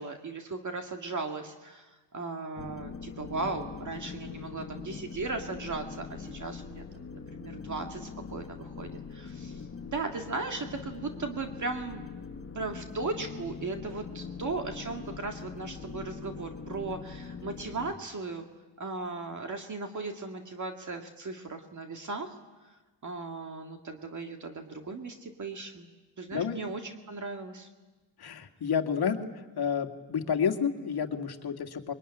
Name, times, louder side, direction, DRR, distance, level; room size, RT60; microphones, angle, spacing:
voice 1, 0.0-12.0 12.6-18.5 18.8-22.4 23.0-25.9 26.2-27.7, right 3 dB, 40° right, 4 dB, 2.1 m, -37 dB
sound 1, 2.6-17.9, left 5 dB, 30° left, 1.4 m, -42 dB
voice 2, 28.2-29.2 29.6-31.9, left 7 dB, 55° left, 5 dB, 2.1 m, -30 dB
25.0 x 22.5 x 10.0 m, 1.2 s
cardioid pair, 110°, 45 cm